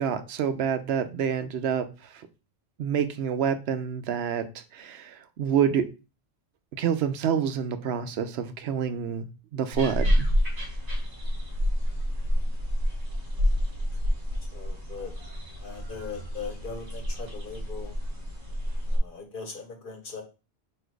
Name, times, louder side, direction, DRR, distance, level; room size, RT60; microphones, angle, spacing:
voice 1, 0.0-1.9 2.8-4.4 4.7-5.9 6.8-9.3 9.5-10.3, right 8 dB, 85° right, 0.9 m, -27 dB
sound 1, 9.7-19.0, equal, 65° right, 1.9 m, -28 dB
voice 2, 14.5-15.1 15.6-17.9 18.9-20.2, left 5 dB, 55° left, 1.1 m, -39 dB
4.3 x 2.7 x 4.5 m
omnidirectional pair, 1.1 m